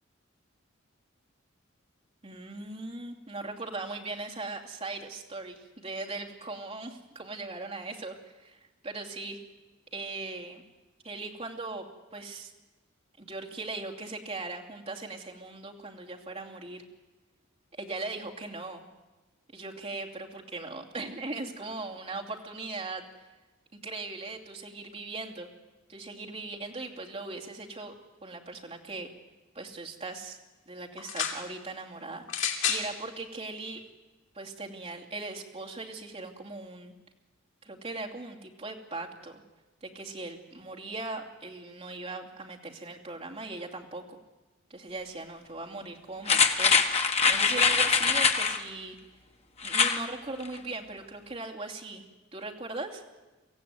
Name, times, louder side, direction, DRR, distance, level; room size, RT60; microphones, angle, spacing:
voice 1, 2.2-9.4 9.9-10.6 11.0-11.9 12.1-12.5 13.2-16.8 17.8-18.8 19.5-23.0 23.7-25.5 25.9-27.9 28.2-29.1 29.5-30.4 30.7-33.8 34.3-36.9 37.6-39.4 39.8-44.2 44.7-49.0 49.6-52.0 52.3-53.0, right 3 dB, 30° right, -1 dB, 2.7 m, -39 dB
sound 1, 31.0-31.4 32.3-32.9 33.8-33.9, left 8 dB, 65° left, 2.9 m, -30 dB
sound 2, 46.3-48.6 49.6-50.0 50.4-50.5, left 5 dB, 30° left, 1.3 m, -23 dB
24.0 x 15.5 x 9.4 m, 1.1 s
head